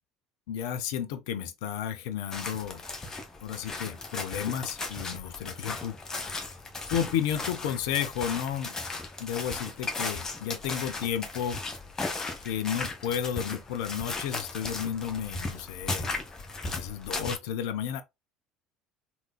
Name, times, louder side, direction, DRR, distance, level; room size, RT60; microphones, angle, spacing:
voice 1, 0.5-2.8 3.4-6.0 6.9-8.8 9.2-11.6 12.4-16.1 16.7-18.0, left 9 dB, 65° left, 0.5 m, -32 dB
sound 1, 2.3-17.4, left 3 dB, 25° left, 1.2 m, -36 dB
3.6 x 2.9 x 2.3 m
figure-of-eight pair, 65°, 2 cm